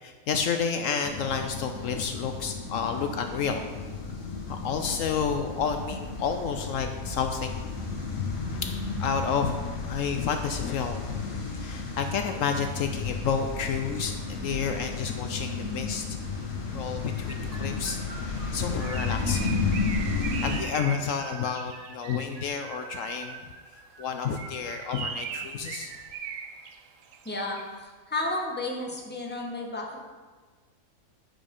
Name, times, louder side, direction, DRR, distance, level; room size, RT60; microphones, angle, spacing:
voice 1, 0.0-3.6 4.5-7.7 8.6-8.7 9.0-9.6 9.8-16.0 16.7-18.0 18.5-19.8 20.4-23.4 24.0-25.9, left 6 dB, 70° left, 6 dB, 0.9 m, -30 dB
sound 1, 1.0-20.6, left 4 dB, 90° left, 1.8 m, -33 dB
sound 2, 17.0-25.1, right 4 dB, 30° right, 1.4 m, -45 dB
Bird, 18.5-22.6 24.2-27.7, right 7 dB, 75° right, 1.0 m, -40 dB
voice 2, 27.2-30.0, left 2 dB, 10° left, -1 dB, 1.1 m, -32 dB
9.2 x 5.1 x 5.3 m, 1.4 s
omnidirectional pair, 1.5 m